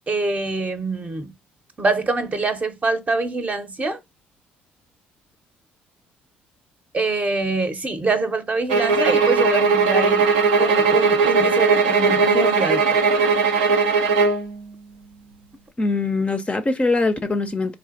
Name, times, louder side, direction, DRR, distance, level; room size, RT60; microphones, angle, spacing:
voice 1, 0.1-1.3 1.8-4.0 6.9-10.3 10.6-13.0, right 3 dB, 30° right, 0.7 m, -24 dB
sound 1, 8.7-14.5, right 4 dB, 85° right, 0.4 m, -18 dB
voice 2, 15.8-17.8, left 3 dB, 25° left, 0.5 m, -22 dB
3.2 x 2.5 x 2.4 m
hypercardioid pair, 50°, 5 cm